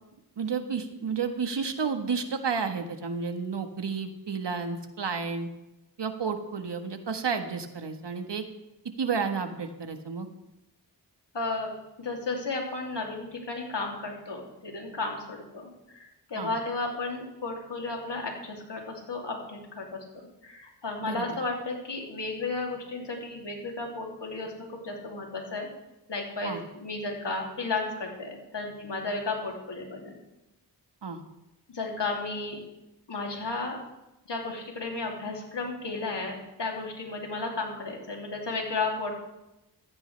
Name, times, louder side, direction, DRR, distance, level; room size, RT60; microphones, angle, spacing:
voice 1, 0.4-5.5 6.0-8.4 9.0-10.3 16.3-16.5 21.0-21.2 26.4-26.6 31.0-31.2, right 5 dB, 75° right, 6 dB, 1.5 m, -31 dB
voice 2, 11.3-25.7 26.1-30.2 31.7-32.6 33.1-33.8 34.3-39.1, left 3 dB, 75° left, 0 dB, 3.0 m, -34 dB
15.5 x 14.5 x 3.4 m, 0.93 s
cardioid pair, 45°, 43 cm